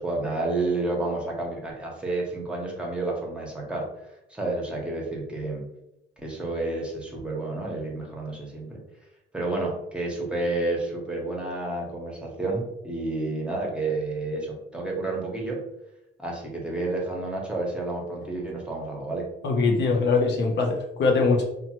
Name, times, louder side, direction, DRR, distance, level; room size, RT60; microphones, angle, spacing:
voice 1, 0.0-5.6 6.2-8.8 9.3-15.6 16.2-19.3, right 2 dB, 5° right, -2 dB, 0.9 m, -30 dB
voice 2, 19.4-21.4, left 4 dB, 60° left, 1 dB, 0.6 m, -22 dB
2.8 x 2.2 x 2.9 m, 0.84 s
cardioid pair, 90°, 20 cm